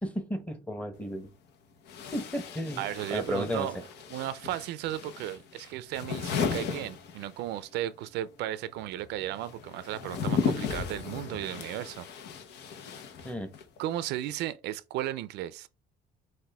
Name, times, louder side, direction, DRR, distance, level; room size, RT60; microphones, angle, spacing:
voice 1, 0.0-1.3 2.1-2.8 3.1-3.7 13.2-13.5, equal, 10° left, 1.0 m, -33 dB
sound 1, 0.9-1.0 1.9-7.7 7.9-13.8, left 6 dB, 80° left, 1.0 m, -35 dB
voice 2, 2.8-3.8 4.1-12.1 13.8-15.7, right 13 dB, 85° right, 0.5 m, -35 dB
5.8 x 2.6 x 3.4 m
cardioid pair, 110°, 17 cm